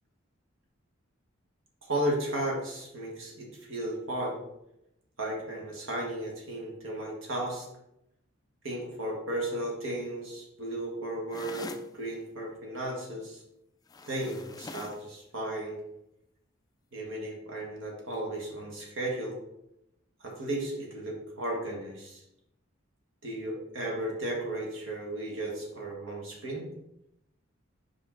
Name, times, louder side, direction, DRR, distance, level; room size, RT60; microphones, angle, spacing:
voice 1, 1.8-4.4 5.2-7.7 8.6-13.4 14.1-15.8 16.9-19.4 20.2-22.2 23.2-26.7, right 1 dB, 75° right, -1 dB, 1.7 m, -34 dB
sound 1, 11.3-11.9 13.9-15.1, left 3 dB, 20° left, 0.3 m, -43 dB
5.0 x 5.0 x 3.8 m, 0.84 s
head